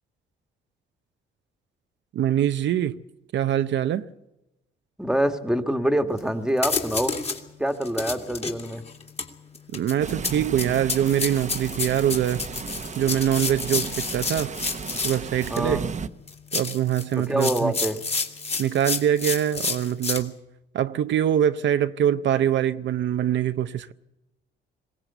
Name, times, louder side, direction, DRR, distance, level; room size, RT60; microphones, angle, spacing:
voice 1, 2.1-3.0 3.3-4.0 9.7-12.4 13.0-14.5 15.0-15.8 16.5-17.7 18.6-20.3 20.7-23.9, right 10 dB, 65° right, 0.7 m, -23 dB
voice 2, 5.0-7.2 7.6-8.8 15.5-15.8 17.2-18.0, right 1 dB, 5° right, 1.5 m, -25 dB
sound 1, 6.2-6.3 6.6-7.4 7.8-15.7 16.3-20.2, left 4 dB, 30° left, 2.5 m, -30 dB
sound 2, 10.0-16.1, right 6 dB, 35° right, 0.9 m, -35 dB
21.5 x 17.5 x 8.0 m
cardioid pair, 90°, 20 cm